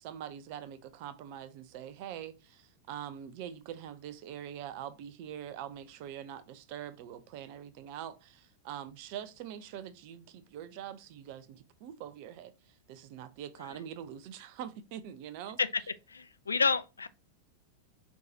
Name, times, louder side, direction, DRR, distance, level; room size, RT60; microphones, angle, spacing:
voice 1, 0.0-15.6, right 10 dB, 45° right, 0.6 m, -44 dB
voice 2, 16.1-17.1, left 4 dB, 75° left, 0.3 m, -29 dB
4.7 x 3.8 x 2.7 m
figure-of-eight pair, 90°, 0 cm